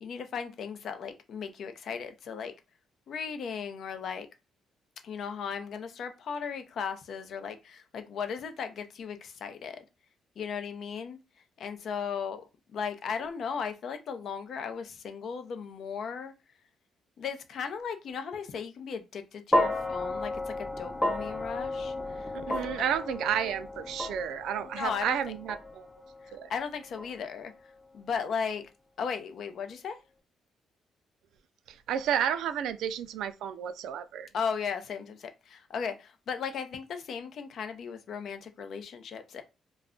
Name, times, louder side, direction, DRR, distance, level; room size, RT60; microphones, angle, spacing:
voice 1, 0.0-2.5 3.1-4.3 5.0-9.8 10.4-11.2 11.6-12.4 12.7-16.3 17.2-22.9 24.6-25.2 26.2-27.5 27.9-28.7 29.0-30.0 34.3-39.4, left 6 dB, 65° left, 0.5 m, -36 dB
sound 1, 19.5-27.8, left 1 dB, 15° left, 0.7 m, -33 dB
voice 2, 22.5-25.9 26.3-26.5 31.7-34.3, right 9 dB, 80° right, 0.3 m, -31 dB
2.3 x 2.1 x 3.6 m
cardioid pair, 90°, 0 cm